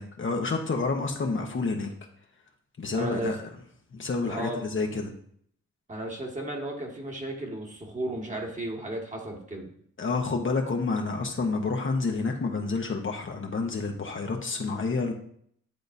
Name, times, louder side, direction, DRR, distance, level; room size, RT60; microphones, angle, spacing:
voice 1, 0.0-1.9 2.8-3.5 3.9-5.1 10.0-15.1, left 4 dB, 40° left, 2 dB, 1.0 m, -29 dB
voice 2, 2.9-3.4 4.3-4.6 5.9-9.7, right 1 dB, 25° right, 0 dB, 1.7 m, -34 dB
10.5 x 3.8 x 2.7 m, 0.64 s
cardioid pair, 65°, 29 cm